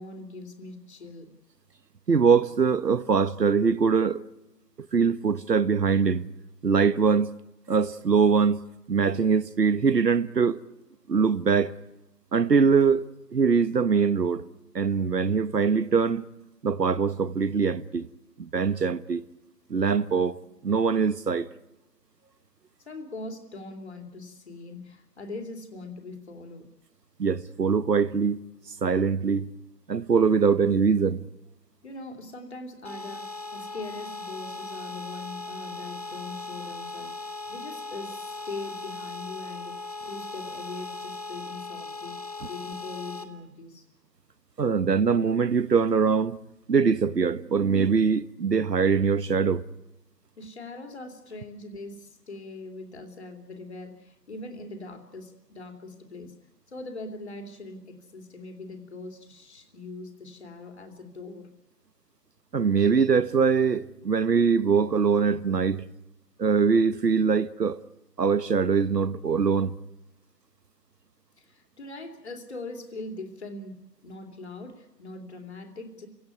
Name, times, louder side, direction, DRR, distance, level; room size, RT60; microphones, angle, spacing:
voice 1, 0.0-1.4 22.8-26.7 31.8-42.2 42.5-43.9 50.4-56.3 56.7-61.5 71.4-76.1, left 2 dB, 40° left, 3.0 m, -41 dB
voice 2, 2.1-4.2 4.9-6.3 6.6-7.3 7.7-8.6 8.9-10.6 11.1-11.7 12.3-13.0 13.3-14.5 14.7-16.3 16.6-18.1 18.4-19.2 19.7-20.4 20.6-21.4 27.2-28.4 28.8-29.5 29.9-31.2 44.6-46.4 46.7-49.6 62.5-65.8 66.4-67.8 68.2-69.7, right 5 dB, 70° right, 1.2 m, -23 dB
sound 1, 32.8-43.2, left 3 dB, 25° left, 0.9 m, -38 dB
28.5 x 17.5 x 9.6 m
figure-of-eight pair, 165°, 50 cm